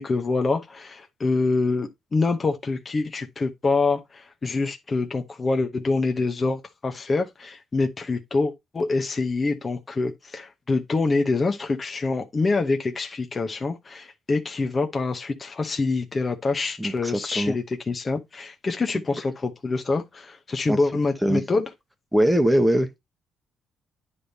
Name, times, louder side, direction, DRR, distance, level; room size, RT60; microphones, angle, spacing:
voice 1, 0.0-21.7, left 3 dB, 30° left, 1.0 m, -26 dB
voice 2, 16.8-17.6 20.7-20.8 21.2-21.4 22.1-23.0, right 1 dB, 5° right, 1.2 m, -21 dB
9.9 x 3.6 x 4.1 m
cardioid pair, 110°, 0 cm